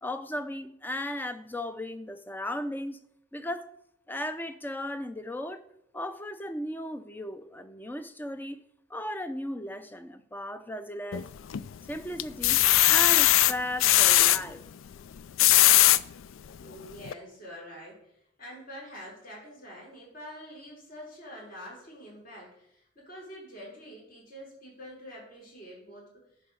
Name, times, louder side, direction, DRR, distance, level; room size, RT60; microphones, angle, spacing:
voice 1, 0.0-3.0 3.3-3.7 4.1-5.6 5.9-8.6 8.9-11.3 11.9-14.6, left 1 dB, 10° left, 0.5 m, -36 dB
sound 1, 11.1-11.7 12.2-14.4 15.2-16.0 16.6-16.7 17.0-17.1, left 14 dB, 90° left, 0.4 m, -20 dB
voice 2, 16.5-26.1, equal, 45° left, 4.2 m, -46 dB
10.5 x 4.8 x 6.4 m
head